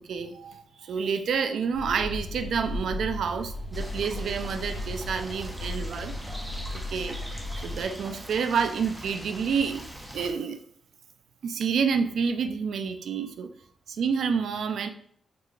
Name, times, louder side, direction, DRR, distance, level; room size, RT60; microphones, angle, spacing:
voice 1, 0.0-6.1 6.9-7.2 7.6-9.8 10.1-10.6 11.4-13.5 13.9-14.9, right 6 dB, 75° right, 9 dB, 0.4 m, -28 dB
sound 1, 1.7-7.8, left 1 dB, 15° left, 1.4 m, -36 dB
sound 2, 3.7-10.3, right 1 dB, 10° right, 0.6 m, -42 dB
4.7 x 3.8 x 2.5 m, 0.62 s
cardioid pair, 100°, 0 cm